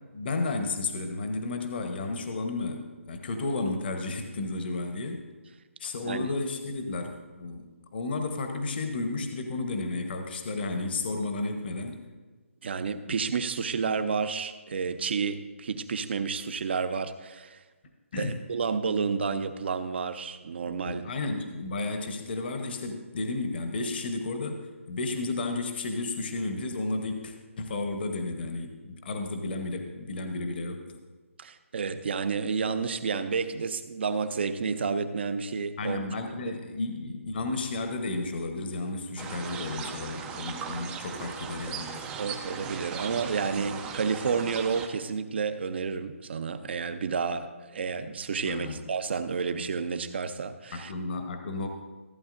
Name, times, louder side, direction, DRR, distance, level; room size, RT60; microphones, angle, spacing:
voice 1, 0.1-5.2 5.8-12.0 13.1-13.2 18.1-18.4 20.6-30.9 35.8-42.0 48.4-48.8 50.7-51.7, left 3 dB, 45° left, 5 dB, 1.0 m, -33 dB
voice 2, 12.6-17.6 18.2-21.1 31.4-36.1 42.2-50.9, right 5 dB, 50° right, 11 dB, 0.7 m, -30 dB
sound 1, 39.2-44.9, right 6 dB, 10° right, 0.4 m, -38 dB
14.5 x 8.5 x 2.6 m, 1.3 s
figure-of-eight pair, 155°, 7 cm